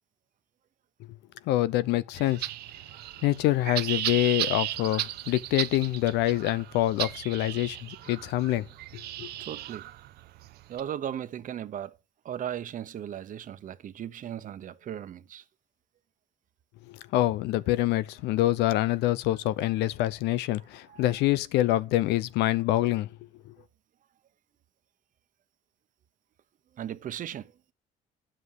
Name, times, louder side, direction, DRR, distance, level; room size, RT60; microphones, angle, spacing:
voice 1, 1.5-2.4 3.2-8.7 9.2-9.3 17.1-23.1, left 15 dB, 85° left, 0.6 m, -26 dB
sound 1, 2.1-10.8, right 15 dB, 70° right, 0.7 m, -35 dB
voice 2, 9.4-9.9 10.7-12.0 12.2-15.4 20.9-21.1 26.8-27.5, right 10 dB, 50° right, 1.0 m, -37 dB
10.0 x 7.7 x 4.8 m
cardioid pair, 110°, 17 cm